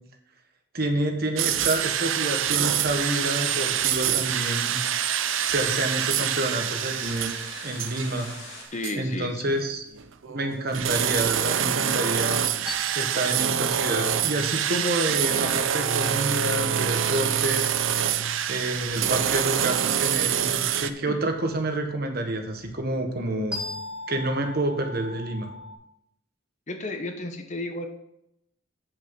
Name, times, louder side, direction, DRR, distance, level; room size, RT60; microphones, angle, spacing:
voice 1, 0.7-4.8 5.4-7.3 7.6-8.3 9.0-9.8 10.3-12.4 12.9-17.7 18.5-23.6 24.1-25.5, right 1 dB, 50° right, 4 dB, 1.3 m, -28 dB
sound 1, 1.4-8.5 8.8-9.0 9.9-20.9, right 9 dB, 70° right, 0.6 m, -26 dB
sound 2, 2.4-8.6, left 3 dB, 65° left, 2.3 m, -42 dB
voice 2, 8.7-9.6 21.1-21.2 26.7-27.9, left 2 dB, 35° left, 6 dB, 0.9 m, -33 dB
sound 3, 12.6-25.7, left 2 dB, 5° right, 1.7 m, -43 dB
8.3 x 7.2 x 5.2 m, 0.79 s
head